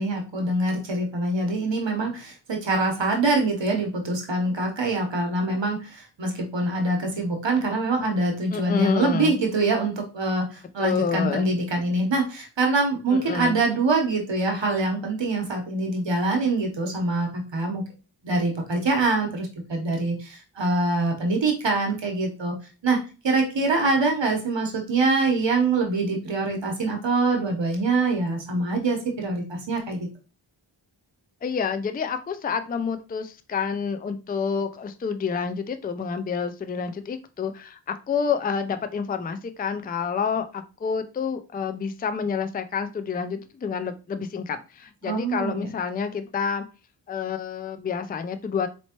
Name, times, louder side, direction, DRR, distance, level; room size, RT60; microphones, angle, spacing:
voice 1, 0.0-17.8 18.2-22.5 22.8-30.1 45.0-45.7, right 3 dB, 70° right, 2 dB, 1.0 m, -24 dB
voice 2, 8.5-9.4 10.8-11.5 13.1-13.6 31.4-46.7 47.1-48.7, left 6 dB, 20° left, 9 dB, 0.3 m, -28 dB
4.3 x 2.9 x 2.9 m, 0.33 s
wide cardioid pair, 80°, 45 cm